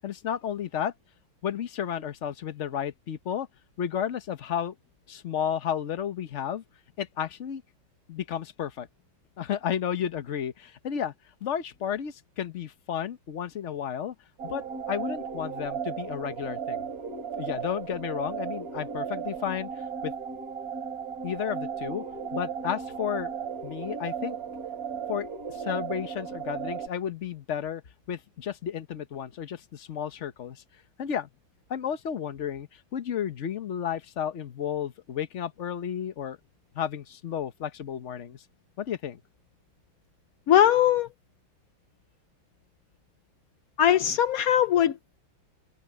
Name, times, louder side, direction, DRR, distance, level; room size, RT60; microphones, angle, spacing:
voice 1, 0.0-0.9 1.4-3.5 3.8-4.7 5.1-6.6 7.0-7.6 8.1-8.9 9.4-11.1 11.4-14.1 14.4-16.9 17.4-19.7 20.0-20.1 21.2-22.0 22.3-23.3 23.6-24.4 25.1-27.8 28.1-30.6 31.0-31.3 31.7-36.4 36.7-38.4 38.8-39.2, left 9 dB, 45° left, 1.0 m, -32 dB
sound 1, 14.4-26.9, right 6 dB, 45° right, 3.5 m, -35 dB
voice 2, 40.5-41.1 43.8-44.9, left 10 dB, 70° left, 0.8 m, -20 dB
omnidirectional pair, 2.2 m